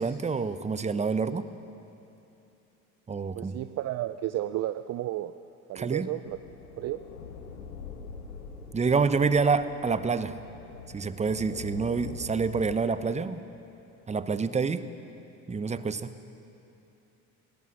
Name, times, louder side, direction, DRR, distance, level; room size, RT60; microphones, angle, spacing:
voice 1, 0.0-1.5 3.1-3.6 5.7-6.1 8.7-10.4 10.9-13.4 14.1-14.8 15.5-16.1, right 5 dB, 15° right, 13 dB, 0.9 m, -27 dB
voice 2, 3.3-5.3 5.7-6.4 6.8-7.0, right 14 dB, 35° right, 12 dB, 0.6 m, -32 dB
sound 1, 6.3-12.8, left 5 dB, 80° left, 1.6 m, -44 dB
23.0 x 18.0 x 6.6 m, 2.8 s
figure-of-eight pair, 60°, 44 cm